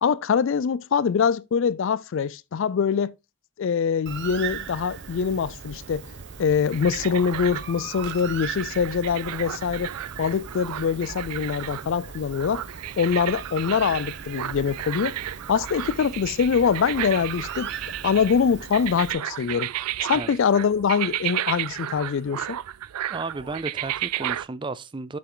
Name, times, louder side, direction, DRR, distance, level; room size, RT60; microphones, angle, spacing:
voice 1, 0.0-3.1 3.6-6.1 6.4-9.9 10.2-12.6 13.0-15.2 15.5-17.7 18.0-19.7 20.0-22.6, left 6 dB, 55° left, 0.3 m, -24 dB
Bird, 4.1-19.1, right 6 dB, 50° right, 0.8 m, -39 dB
sound 1, 6.7-24.5, right 12 dB, 85° right, 0.4 m, -33 dB
voice 2, 23.1-25.2, right 3 dB, 20° right, 0.4 m, -33 dB
7.6 x 6.9 x 3.9 m
head